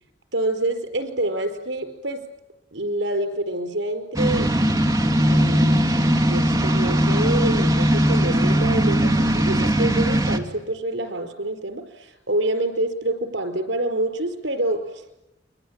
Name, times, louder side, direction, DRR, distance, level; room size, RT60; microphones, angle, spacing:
voice 1, 0.3-2.2 2.7-4.5 5.3-5.8 6.3-15.0, right 1 dB, 85° right, 8 dB, 4.7 m, -27 dB
sound 1, 4.1-10.4, equal, 15° right, 2.3 m, -19 dB
29.5 x 23.0 x 8.9 m, 0.90 s
head